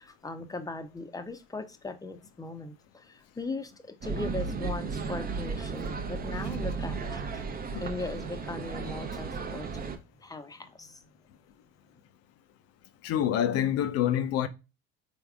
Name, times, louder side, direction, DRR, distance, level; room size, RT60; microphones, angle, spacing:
voice 1, 0.0-7.5 7.8-11.0, left 2 dB, 10° left, 0.6 m, -39 dB
sound 1, 4.0-10.0, right 5 dB, 30° right, 0.6 m, -34 dB
voice 2, 13.0-14.5, left 10 dB, 55° left, 0.5 m, -27 dB
4.0 x 3.5 x 2.4 m
hypercardioid pair, 75°, 29 cm